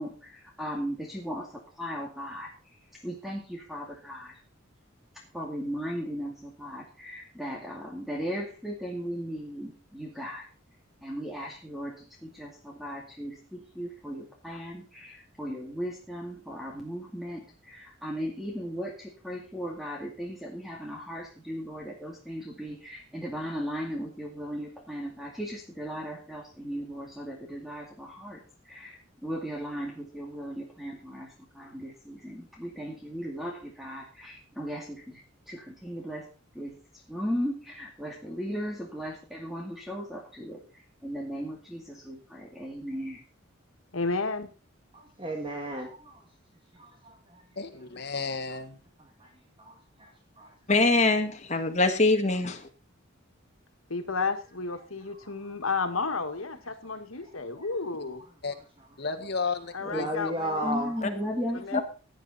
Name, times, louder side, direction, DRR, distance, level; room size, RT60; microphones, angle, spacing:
voice 1, 0.0-2.5 2.9-4.4 5.3-10.5 11.0-36.3 36.5-43.2 60.6-61.8, equal, ahead, 2.2 m, -37 dB
voice 2, 43.9-44.5 53.9-58.2 59.7-60.7 61.5-61.8, left 4 dB, 85° left, 1.8 m, -32 dB
voice 3, 44.9-46.3 46.8-47.4 48.5-48.6 49.0-49.3 49.6-50.5 55.1-55.8 56.8-56.9 57.2-57.7 58.0-58.9 59.8-61.0, right 1 dB, 25° right, 2.0 m, -37 dB
voice 4, 47.6-48.8 58.4-58.5 59.0-59.7 59.9-60.1, left 4 dB, 50° left, 1.7 m, -32 dB
voice 5, 50.7-52.6 61.7-61.8, left 3 dB, 35° left, 1.8 m, -23 dB
16.0 x 9.4 x 4.2 m
head